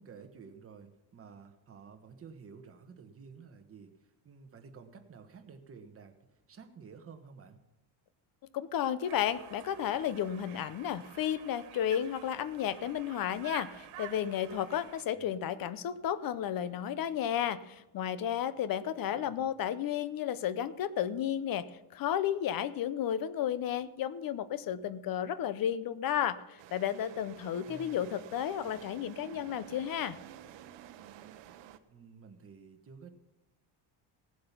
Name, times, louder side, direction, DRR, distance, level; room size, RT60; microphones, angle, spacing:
voice 1, 0.0-6.2 6.5-7.6 10.7-11.0 15.1-15.4 19.1-19.5 27.7-28.2 31.9-33.1, right 5 dB, 30° right, 5 dB, 1.3 m, -52 dB
voice 2, 8.5-21.7 21.9-30.2, left 10 dB, 45° left, 16 dB, 0.7 m, -33 dB
Conversation, 9.0-15.0, right 12 dB, 85° right, 1.6 m, -50 dB
sound 1, 26.6-31.8, right 10 dB, 65° right, 0.9 m, -51 dB
17.0 x 7.7 x 5.8 m, 0.98 s
cardioid pair, 140°, 47 cm